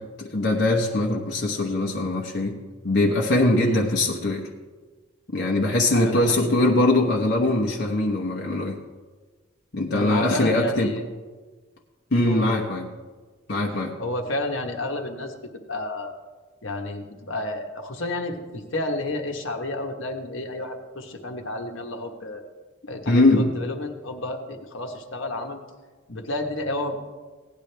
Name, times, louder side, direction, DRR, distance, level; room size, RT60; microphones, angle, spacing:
voice 1, 0.0-2.6 2.8-4.5 5.3-8.8 9.7-10.9 12.1-12.9 13.5-13.9 23.1-23.5, left 2 dB, 55° left, -2 dB, 1.0 m, -22 dB
voice 2, 5.9-6.5 9.9-11.1 12.2-12.7 14.0-15.3 15.7-16.1 16.6-22.4 22.9-25.6 26.1-27.0, left 2 dB, 70° left, 4 dB, 1.3 m, -31 dB
17.0 x 10.5 x 3.4 m, 1.4 s
head